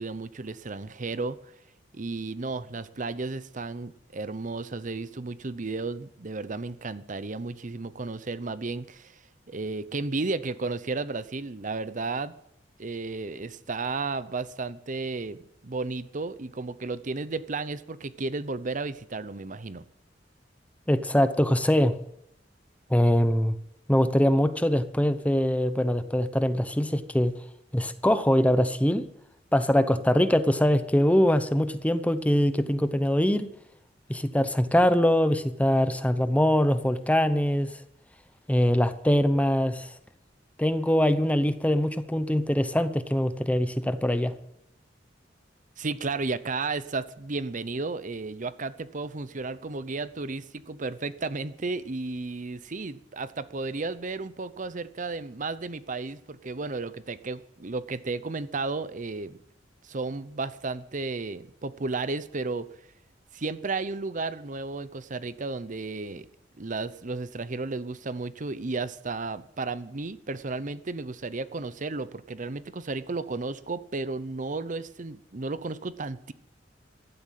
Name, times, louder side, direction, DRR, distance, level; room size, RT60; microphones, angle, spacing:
voice 1, 0.0-1.4 1.9-9.2 9.5-12.3 12.8-19.9 45.8-59.4 59.8-62.7 63.3-66.3 66.6-76.3, right 3 dB, 45° right, 14 dB, 0.8 m, -33 dB
voice 2, 20.9-21.9 22.9-23.6 23.9-27.3 27.7-29.0 29.5-33.5 34.1-37.7 38.5-39.9 40.6-44.3, equal, 10° left, 11 dB, 0.8 m, -23 dB
15.5 x 12.5 x 7.6 m, 0.77 s
head